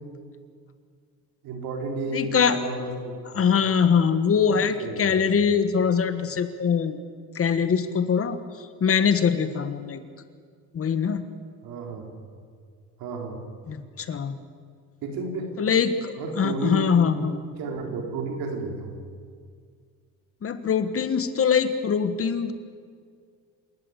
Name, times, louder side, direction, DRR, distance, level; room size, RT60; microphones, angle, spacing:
voice 1, 1.4-3.6 4.8-5.3 11.6-12.2 13.0-13.4 15.0-15.5 16.2-16.9 17.2-17.3 17.6-18.9, right 3 dB, 75° right, 3 dB, 4.2 m, -32 dB
voice 2, 2.1-2.6 3.3-7.0 7.3-8.4 8.8-10.0 10.7-11.3 13.7-14.4 15.6-17.4 20.4-22.5, left 6 dB, 40° left, 11 dB, 1.6 m, -23 dB
27.5 x 12.5 x 8.2 m, 2.1 s
cardioid pair, 100°, 35 cm